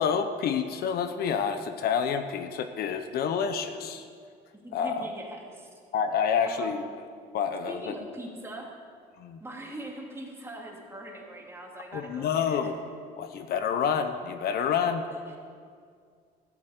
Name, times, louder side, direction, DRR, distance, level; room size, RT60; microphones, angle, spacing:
voice 1, 0.0-4.1 4.7-5.0 5.9-6.8 7.3-7.9 9.2-9.4 11.9-12.7 13.2-15.1, left 7 dB, 65° left, 8 dB, 0.9 m, -28 dB
voice 2, 4.6-5.7 6.5-6.9 7.7-8.7 9.4-12.7 15.1-15.4, right 1 dB, 15° right, -1 dB, 2.5 m, -42 dB
15.0 x 7.4 x 8.2 m, 2.1 s
cardioid pair, 110°, 17 cm